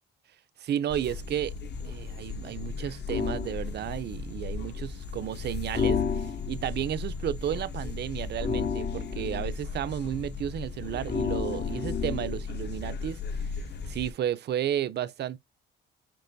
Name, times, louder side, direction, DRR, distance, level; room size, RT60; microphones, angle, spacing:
voice 1, 0.6-1.5 1.8-13.2 13.8-15.4, right 10 dB, 60° right, 0.5 m, -32 dB
sound 1, 0.9-14.1, left 4 dB, 60° left, 0.8 m, -37 dB
sound 2, 3.1-3.5 5.7-6.7 8.4-9.5 11.1-12.4, left 6 dB, 35° left, 0.5 m, -30 dB
6.8 x 3.0 x 2.6 m
cardioid pair, 90°, 20 cm